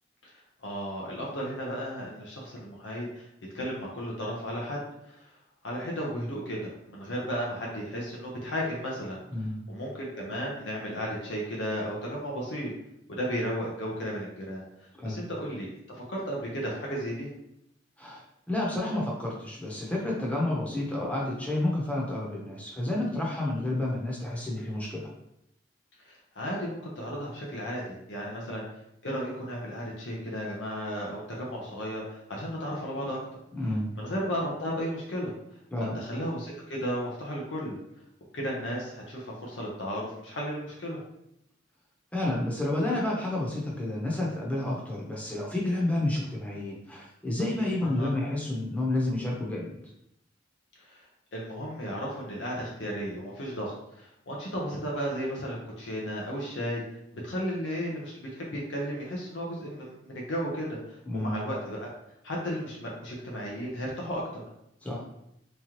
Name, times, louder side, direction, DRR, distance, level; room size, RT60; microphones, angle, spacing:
voice 1, 0.6-3.3 3.5-4.8 5.0-5.3 5.6-9.2 9.7-12.7 13.1-14.6 15.0-17.3 26.0-28.6 29.0-33.2 34.0-35.3 35.8-37.8 38.3-41.0 47.8-48.1 50.9-51.0 51.3-56.8 57.2-60.8 61.1-61.9 62.2-64.4, equal, 80° left, -3 dB, 0.8 m, -34 dB
voice 2, 9.3-9.6 15.0-15.2 18.0-25.1 33.5-33.9 35.7-36.0 42.1-49.8 61.1-61.3 64.8-65.0, left 1 dB, 10° left, -4 dB, 0.9 m, -30 dB
3.6 x 3.1 x 3.0 m, 0.78 s
head